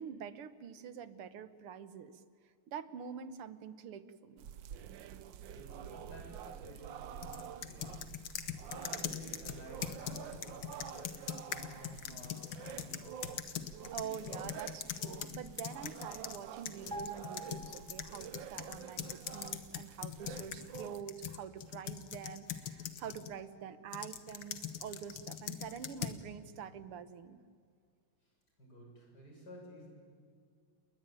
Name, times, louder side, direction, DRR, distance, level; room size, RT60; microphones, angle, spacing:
voice 1, 0.0-2.2 2.7-4.4 8.9-9.0 12.1-12.2 13.9-27.4, right 8 dB, 85° right, 13 dB, 2.1 m, -46 dB
sound 1, 4.4-21.0, right 9 dB, 65° right, 1.4 m, -48 dB
voice 2, 5.4-8.1 8.6-11.2 11.4-13.3 28.6-29.9, equal, 45° left, 0 dB, 8.2 m, -53 dB
sound 2, 7.2-16.4 16.7-23.3 23.9-26.2, left 9 dB, 70° left, 2.2 m, -42 dB
sound 3, 16.9-18.5 18.8-19.0, right 2 dB, ahead, 4.6 m, -46 dB
29.5 x 21.0 x 9.2 m, 2.1 s
omnidirectional pair, 2.4 m